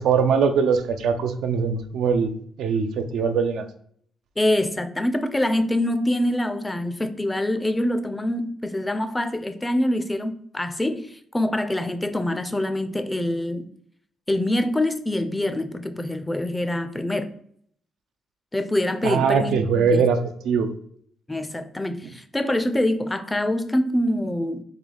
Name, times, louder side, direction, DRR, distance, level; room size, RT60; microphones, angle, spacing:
voice 1, 0.0-2.3 2.6-3.7 19.0-20.2 20.4-20.7 22.0-22.1, right 6 dB, 75° right, 8 dB, 0.3 m, -21 dB
voice 2, 4.4-13.7 14.3-17.3 18.5-20.0 21.3-24.6, left 1 dB, 15° left, 9 dB, 0.4 m, -25 dB
3.7 x 2.3 x 3.3 m, 0.63 s
cardioid pair, 90°, 0 cm